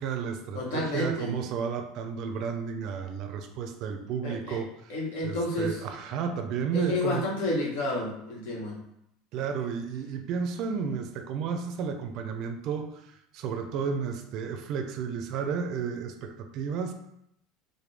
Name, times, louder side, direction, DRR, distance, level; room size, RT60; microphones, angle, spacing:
voice 1, 0.0-5.0 5.2-7.2 9.3-16.9, right 6 dB, 45° right, 6 dB, 0.4 m, -32 dB
voice 2, 0.5-1.4 4.2-4.6 4.9-5.8 6.7-8.8, left 1 dB, 90° left, -2 dB, 1.2 m, -30 dB
4.7 x 2.2 x 3.3 m, 0.77 s
cardioid pair, 165°, 0 cm